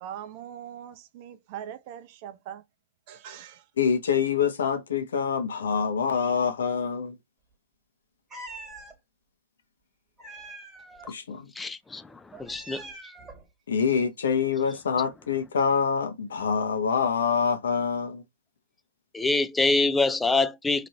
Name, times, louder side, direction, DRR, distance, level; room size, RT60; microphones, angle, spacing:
voice 1, 0.0-2.6 3.1-3.7, right 10 dB, 40° right, 0.6 m, -41 dB
voice 2, 3.8-7.2 11.1-11.5 13.7-18.2, left 6 dB, 70° left, 0.9 m, -26 dB
Meow, 8.3-8.9 10.2-11.1 12.3-13.4, right 2 dB, 10° right, 1.5 m, -43 dB
voice 3, 11.5-13.1 19.1-20.9, left 3 dB, 10° left, 0.3 m, -26 dB
3.0 x 2.6 x 3.0 m
hypercardioid pair, 130°, 0 cm